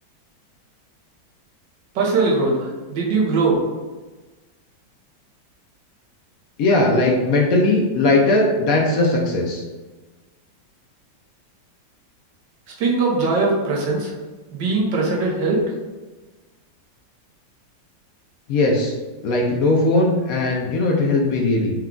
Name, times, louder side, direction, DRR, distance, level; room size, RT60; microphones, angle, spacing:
voice 1, 1.9-3.6 12.8-14.1 14.5-15.6, right 3 dB, 75° right, -2 dB, 1.5 m, -20 dB
voice 2, 6.6-9.6 18.5-18.9 19.2-21.7, left 2 dB, 70° left, -1 dB, 0.8 m, -18 dB
4.5 x 2.3 x 3.7 m, 1.2 s
omnidirectional pair, 2.0 m